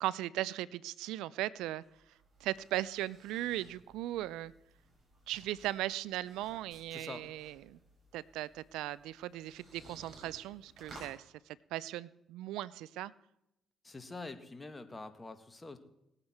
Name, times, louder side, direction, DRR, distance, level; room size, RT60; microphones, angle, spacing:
voice 1, 0.0-1.8 2.4-4.5 5.3-7.8 8.1-13.1, right 15 dB, 75° right, 19 dB, 0.4 m, -38 dB
sound 1, 1.6-11.2, right 2 dB, 50° right, 6.5 m, -58 dB
voice 2, 6.9-7.2 13.8-15.8, left 3 dB, 25° left, 9 dB, 1.9 m, -45 dB
19.0 x 8.8 x 4.5 m, 0.84 s
hypercardioid pair, 45°, 0 cm